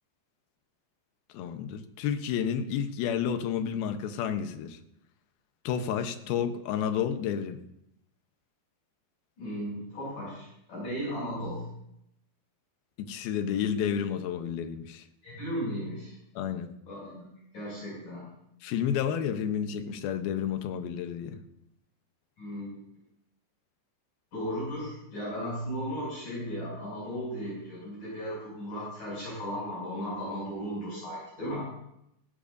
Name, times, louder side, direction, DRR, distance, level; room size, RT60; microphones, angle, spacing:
voice 1, 1.3-4.8 5.6-7.6 13.0-15.0 16.4-16.7 18.6-21.4, left 8 dB, 70° left, 7 dB, 2.4 m, -30 dB
voice 2, 9.4-11.7 15.2-16.2 16.9-17.2 17.5-18.4 22.4-22.8 24.3-31.6, equal, 45° left, -6 dB, 8.2 m, -36 dB
18.0 x 17.5 x 2.7 m, 0.79 s
omnidirectional pair, 5.3 m